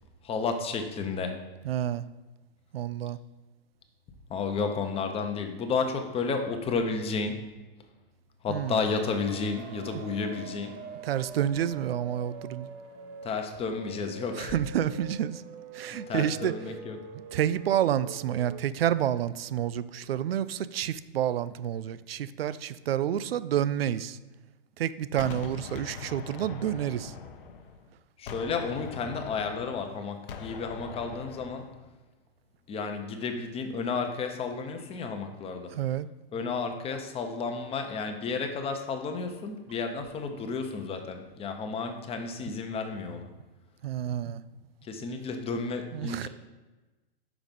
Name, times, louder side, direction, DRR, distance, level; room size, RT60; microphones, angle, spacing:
voice 1, 0.2-1.4 4.3-7.4 8.4-10.8 13.2-14.5 15.9-17.0 28.2-31.7 32.7-35.7 36.3-43.3 44.8-46.3, left 4 dB, 20° left, 0.8 m, -32 dB
voice 2, 1.6-2.1 2.7-3.2 8.5-8.8 11.0-12.7 14.3-15.4 15.7-16.7 17.3-24.2 24.8-27.1 35.7-36.1 43.8-44.4 45.9-46.3, right 10 dB, 80° right, 0.5 m, -29 dB
sound 1, 8.7-18.6, right 6 dB, 35° right, 0.8 m, -45 dB
Gunshot gunfire, 25.2-27.9 28.3-31.8, left 6 dB, 65° left, 0.8 m, -42 dB
6.0 x 4.8 x 5.3 m
hypercardioid pair, 120°, 29 cm